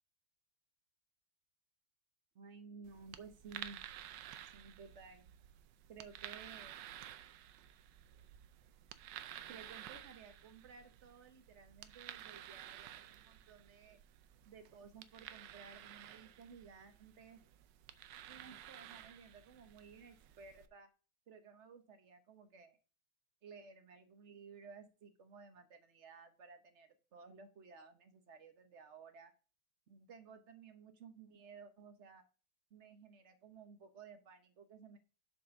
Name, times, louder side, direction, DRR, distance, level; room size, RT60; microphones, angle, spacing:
voice 1, 2.3-3.8 4.4-5.3 5.9-6.8 9.5-14.0 14.5-17.4 18.3-20.9 21.3-22.8 23.4-29.3 29.9-32.2 32.7-35.0, right 5 dB, 45° right, 7 dB, 0.9 m, -56 dB
sound 1, 2.8-20.7, right 11 dB, 70° right, 1.1 m, -53 dB
7.2 x 4.8 x 6.3 m, 0.36 s
omnidirectional pair, 2.3 m